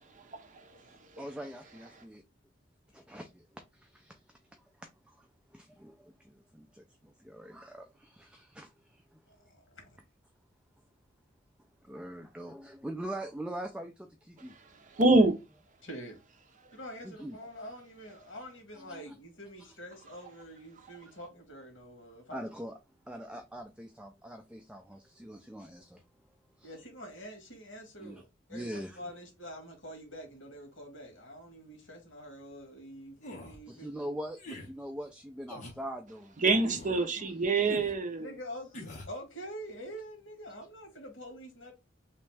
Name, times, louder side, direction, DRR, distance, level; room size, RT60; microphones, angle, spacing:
voice 1, 1.2-2.2 2.9-9.2 11.8-14.5 17.0-17.4 18.8-19.1 22.3-22.8 23.1-26.0 26.6-26.7 28.0-28.2 28.5-29.1 33.7-37.3 37.7-37.8, right 1 dB, 5° right, 0.4 m, -43 dB
voice 2, 9.3-10.0 15.8-16.2 16.7-22.4 26.6-28.2 28.5-33.9 38.2-41.7, equal, 70° left, 1.7 m, -46 dB
voice 3, 15.0-15.3 36.4-38.3, right 2 dB, 40° right, 0.7 m, -25 dB
sound 1, 33.2-33.6 34.4-34.7 35.5-35.8 36.6-37.0 37.7-38.0 38.7-39.1, left 1 dB, 40° left, 1.1 m, -44 dB
3.2 x 3.0 x 3.3 m
head